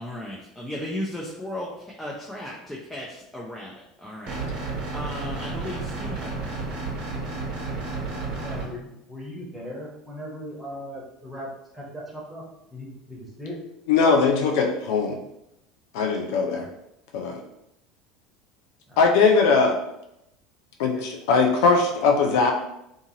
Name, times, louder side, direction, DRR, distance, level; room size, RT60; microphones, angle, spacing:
voice 1, 0.0-3.7 4.0-6.9, left 1 dB, 5° left, -4 dB, 0.6 m, -36 dB
sound 1, 4.3-8.7, right 3 dB, 45° right, 0.9 m, -31 dB
voice 2, 8.4-12.4 12.7-13.6 16.3-16.7 18.9-19.0 20.9-21.0, equal, 10° right, -4 dB, 1.1 m, -38 dB
voice 3, 13.9-15.2 15.9-16.6 17.1-17.4 19.0-19.8 20.8-22.5, left 4 dB, 65° left, 3 dB, 0.4 m, -20 dB
2.7 x 2.4 x 2.8 m, 0.83 s
hypercardioid pair, 75°, 2 cm